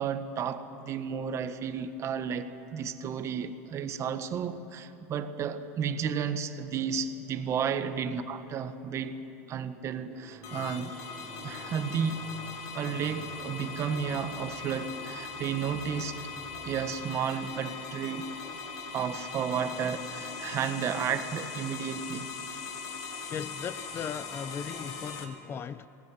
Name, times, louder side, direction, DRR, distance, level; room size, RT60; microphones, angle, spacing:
voice 1, 0.0-9.1 9.5-10.9 11.4-12.2 12.7-16.3 16.6-18.2 18.9-22.3, right 7 dB, 35° right, 1.6 m, -32 dB
sound 1, 10.1-16.9, right 1 dB, 20° right, 3.9 m, -52 dB
sound 2, 10.4-25.2, left 5 dB, 50° left, 3.7 m, -40 dB
voice 2, 23.3-25.9, left 7 dB, 30° left, 0.7 m, -37 dB
22.0 x 18.5 x 9.4 m
supercardioid pair, 115°, 8 cm